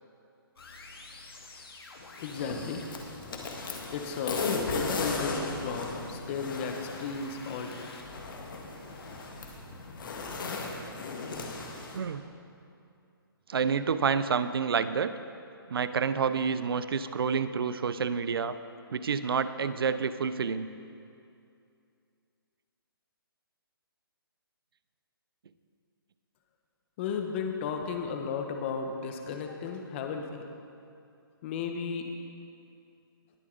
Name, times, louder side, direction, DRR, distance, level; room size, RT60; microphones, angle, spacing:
sound 1, 0.6-10.4, left 2 dB, 75° left, 2.0 m, -49 dB
sound 2, 2.2-12.0, left 4 dB, 55° left, 1.8 m, -36 dB
voice 1, 2.2-2.9 3.9-7.9 27.0-30.4 31.4-32.1, left 5 dB, 30° left, 4 dB, 1.0 m, -34 dB
voice 2, 13.5-15.1 15.7-18.5 18.9-20.7, right 6 dB, 70° right, 13 dB, 0.6 m, -28 dB
20.5 x 7.4 x 3.9 m, 2.5 s
hypercardioid pair, 155°, 13 cm